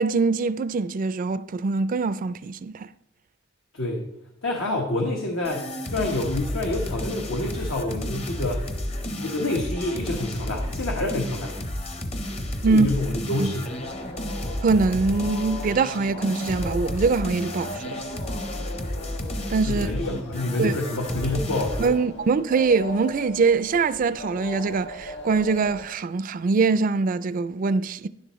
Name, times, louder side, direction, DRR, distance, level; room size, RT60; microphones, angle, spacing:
voice 1, 0.0-2.9 12.6-12.9 13.4-13.5 14.6-18.0 19.5-19.9 20.6-20.8 21.8-28.1, right 4 dB, 45° right, 0.4 m, -23 dB
voice 2, 3.7-4.1 4.4-8.6 9.2-11.5 12.6-13.7 19.6-21.9, left 2 dB, 80° left, 1.3 m, -27 dB
sound 1, 5.4-22.0, left 1 dB, 30° left, 0.8 m, -32 dB
sound 2, 13.6-25.9, left 1 dB, 60° left, 1.5 m, -39 dB
11.0 x 10.5 x 3.1 m
head